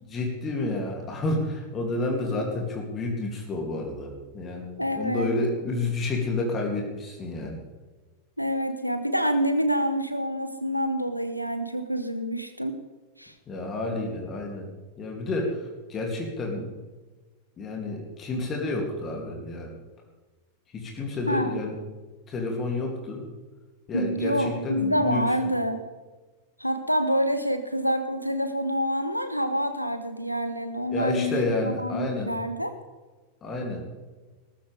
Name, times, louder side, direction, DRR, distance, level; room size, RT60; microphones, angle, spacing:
voice 1, 0.1-7.6 13.5-14.7 15.0-16.7 17.6-19.8 20.7-21.8 22.3-23.2 23.9-25.2 30.9-32.3 33.4-33.9, left 2 dB, 25° left, 1 dB, 2.7 m, -30 dB
voice 2, 4.8-5.3 8.4-12.8 13.2-13.3 21.3-21.6 23.9-25.8 26.6-32.8, equal, 90° left, 9 dB, 0.9 m, -27 dB
18.0 x 14.0 x 3.5 m, 1.3 s
figure-of-eight pair, 90°, 0 cm